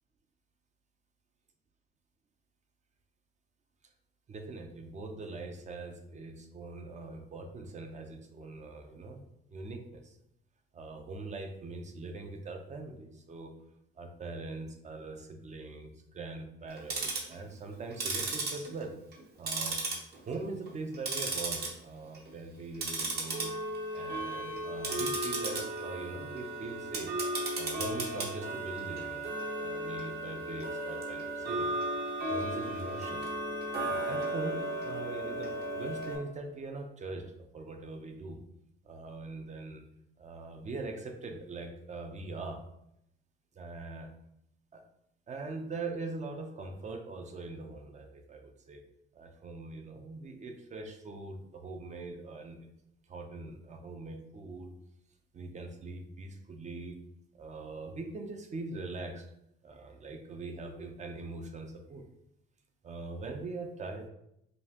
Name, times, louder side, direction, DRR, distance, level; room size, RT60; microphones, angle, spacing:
voice 1, 4.3-9.2 9.5-10.2 10.7-13.5 14.0-18.9 19.4-19.8 20.3-23.5 23.9-27.1 27.5-29.2 29.6-31.7 32.3-33.2 33.8-34.6 34.8-37.2 37.5-38.4 38.8-39.8 40.2-42.6 43.5-44.1 44.7-44.8 45.3-48.8 49.1-52.7 53.1-54.7 55.3-57.0 57.3-59.3 59.6-62.0 62.8-64.1, right 3 dB, 35° right, 5 dB, 0.6 m, -42 dB
Tick-tock, 16.7-17.3 17.9-19.2 19.5-20.3 20.7-21.7 22.1-22.3 22.7-36.2, right 2 dB, 50° right, 1.0 m, -35 dB
5.2 x 2.4 x 2.8 m, 0.79 s
cardioid pair, 100°, 21 cm